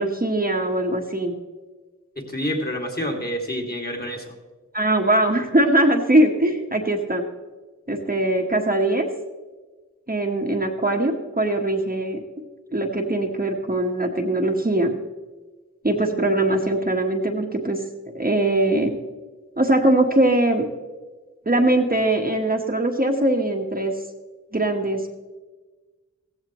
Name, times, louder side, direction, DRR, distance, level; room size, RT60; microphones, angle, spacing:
voice 1, 0.0-1.3 4.7-7.2 7.9-9.1 10.1-12.2 12.7-14.9 15.8-17.8 18.1-18.9 19.6-20.7 21.4-23.9 24.5-25.2, right 1 dB, 30° right, 1 dB, 1.4 m, -21 dB
voice 2, 2.2-4.3, equal, 30° left, 2 dB, 2.4 m, -28 dB
16.0 x 15.0 x 3.1 m, 1.3 s
wide cardioid pair, 60°, 30 cm